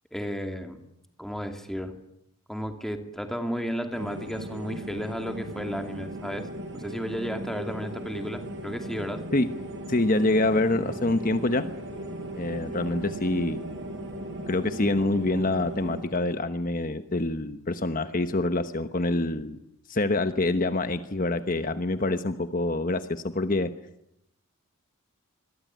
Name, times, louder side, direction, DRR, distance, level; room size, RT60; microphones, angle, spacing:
voice 1, 0.1-0.8 1.2-1.9 2.5-6.5 6.7-9.2, equal, ahead, 5 dB, 2.7 m, -33 dB
sound 1, 3.9-16.0, right 1 dB, 60° right, 6.0 m, -37 dB
voice 2, 9.9-11.7 12.3-13.6 14.5-19.6 19.9-23.7, left 2 dB, 40° left, 9 dB, 1.1 m, -26 dB
27.0 x 22.5 x 9.5 m, 0.80 s
head